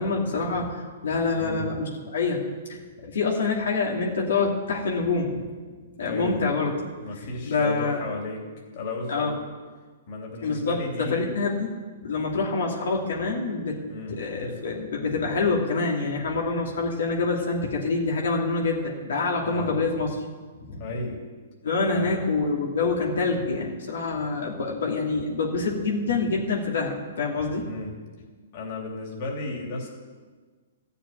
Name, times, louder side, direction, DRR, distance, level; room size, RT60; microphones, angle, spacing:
voice 1, 0.0-2.4 2.7-5.4 6.0-6.7 7.5-8.0 9.1-9.3 10.4-11.7 12.0-13.8 14.1-20.1 20.6-20.8 21.6-27.7, left 3 dB, 80° left, -2 dB, 2.6 m, -26 dB
voice 2, 1.3-1.7 6.0-6.4 7.0-8.4 8.7-9.3 10.1-11.3 13.8-14.6 19.4-19.8 20.8-21.2 21.9-22.2 27.6-28.0 28.5-29.9, left 2 dB, 45° left, 0 dB, 3.1 m, -34 dB
14.0 x 6.9 x 10.0 m, 1.5 s
hypercardioid pair, 145°, 0 cm